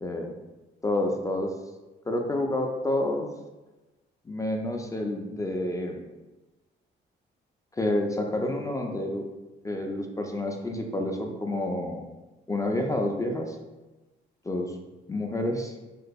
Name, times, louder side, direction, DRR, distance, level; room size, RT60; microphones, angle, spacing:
voice 1, 0.0-0.3 0.8-1.5 2.1-3.3 4.3-6.0 7.7-9.3 9.6-12.1 12.5-13.6 14.5-14.8 15.1-15.7, left 1 dB, 15° left, 2 dB, 0.3 m, -29 dB
3.0 x 2.8 x 2.5 m, 1.1 s
cardioid pair, 90°, 20 cm